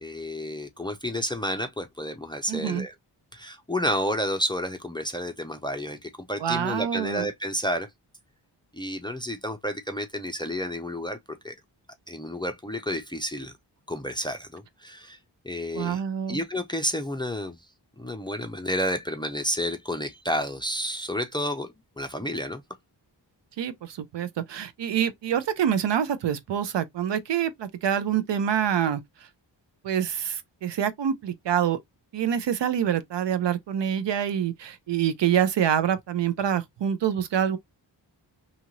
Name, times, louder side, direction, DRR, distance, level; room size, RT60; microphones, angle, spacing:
voice 1, 0.0-2.9 3.3-7.9 8.7-11.5 12.1-13.5 13.9-15.2 15.4-16.0 16.3-17.6 18.0-22.6, equal, 10° left, 0.4 m, -30 dB
voice 2, 2.5-2.8 6.4-7.3 15.7-16.4 23.6-29.0 29.8-31.8 32.1-37.6, right 9 dB, 70° right, 0.6 m, -26 dB
2.8 x 2.5 x 2.9 m
wide cardioid pair, 140°, 44 cm